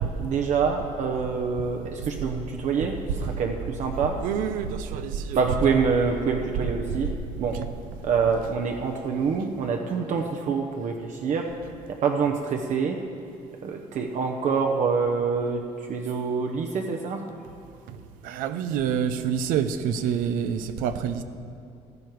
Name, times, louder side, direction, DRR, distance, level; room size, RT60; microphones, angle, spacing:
voice 1, 0.2-4.2 5.3-7.1 7.4-7.6 8.0-11.5 12.0-13.0 13.6-17.2, right 5 dB, 60° right, 3 dB, 1.0 m, -26 dB
voice 2, 2.8-3.3 4.2-5.4 6.6-7.0 7.5-7.7 17.9-21.2, right 7 dB, 85° right, 11 dB, 0.7 m, -28 dB
15.0 x 12.0 x 4.7 m, 2.5 s
cardioid pair, 100°, 14 cm